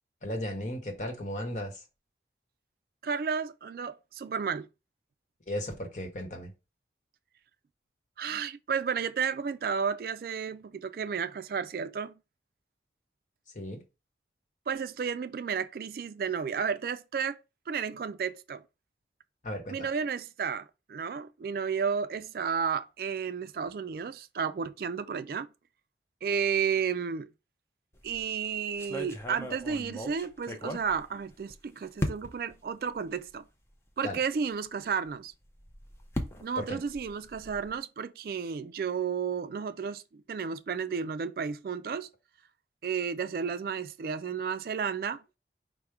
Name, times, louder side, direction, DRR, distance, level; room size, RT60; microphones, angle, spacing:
voice 1, 0.2-1.8 5.5-6.5 13.5-13.8 19.4-19.9 34.0-34.2 36.6-36.8, left 1 dB, 45° left, 1.0 m, -35 dB
voice 2, 3.0-4.7 8.2-12.2 14.7-17.4 17.7-18.6 19.7-25.5 26.2-27.3 28.0-33.5 34.0-35.3 36.4-42.1 42.8-45.2, right 6 dB, 55° right, 0.3 m, -32 dB
sound 1, 27.9-28.2 28.8-31.5 32.0-32.5 33.3-33.4 33.7-33.8 35.4-37.8, left 1 dB, 15° left, 0.5 m, -37 dB
5.0 x 2.1 x 4.5 m
head